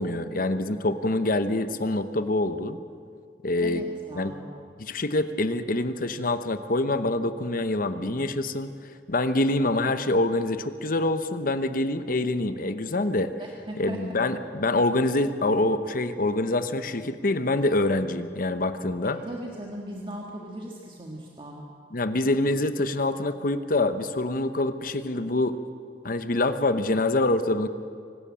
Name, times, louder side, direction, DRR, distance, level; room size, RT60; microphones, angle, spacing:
voice 1, 0.0-2.8 3.4-3.8 4.1-4.4 4.8-8.7 9.1-13.3 13.8-19.2 21.9-25.6 26.0-27.7, left 2 dB, 55° left, 10 dB, 1.0 m, -25 dB
voice 2, 3.6-4.5 13.4-14.0 19.0-21.6, equal, 30° right, -1 dB, 1.7 m, -38 dB
24.5 x 12.5 x 8.7 m, 2.3 s
head